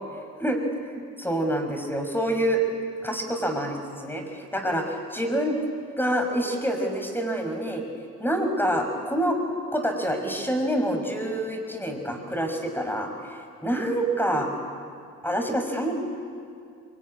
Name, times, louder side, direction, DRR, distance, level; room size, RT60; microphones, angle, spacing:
voice 1, 0.9-2.6 3.0-5.5 6.0-7.8 8.2-9.4 9.7-14.5 15.2-15.9, right 1 dB, 5° left, 4 dB, 5.7 m, -27 dB
26.5 x 22.5 x 9.8 m, 2.3 s
cardioid pair, 90°, 30 cm